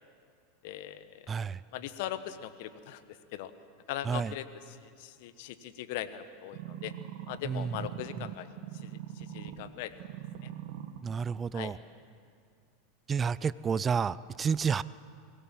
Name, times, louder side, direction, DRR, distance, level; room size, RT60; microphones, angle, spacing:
voice 1, 0.6-1.4 1.7-3.0 3.3-3.5 3.9-6.9 7.3-8.5 8.8-9.9 10.4-10.5 11.5-11.7, left 12 dB, 65° left, 12 dB, 1.1 m, -40 dB
voice 2, 1.3-1.6 4.1-4.3 7.4-7.7 11.0-11.8 13.1-14.8, right 6 dB, 25° right, 18 dB, 0.4 m, -30 dB
sound 1, 6.5-9.7 10.0-11.0 11.6-11.7, right 11 dB, 65° right, 1.8 m, -42 dB
23.5 x 17.5 x 7.4 m, 2.3 s
hypercardioid pair, 100°, 0 cm